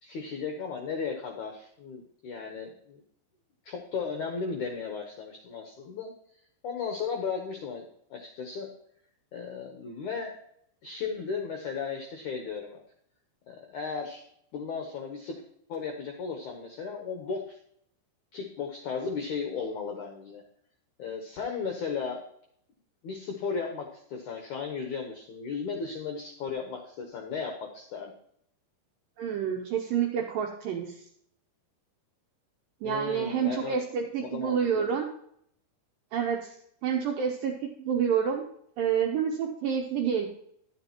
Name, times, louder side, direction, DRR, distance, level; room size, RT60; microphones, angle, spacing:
voice 1, 0.0-3.0 3.6-6.1 6.6-8.7 9.3-10.3 10.8-12.8 13.5-14.2 14.5-15.3 15.7-17.6 18.3-20.4 21.0-22.2 23.0-28.1 32.8-33.8 34.2-34.9, left 5 dB, 80° left, 2 dB, 1.7 m, -35 dB
voice 2, 29.2-31.0 32.8-35.1 36.1-36.5 36.8-37.5 37.8-38.4 38.8-40.3, right 7 dB, 80° right, 1 dB, 2.1 m, -28 dB
11.5 x 9.8 x 3.0 m, 0.68 s
omnidirectional pair, 5.0 m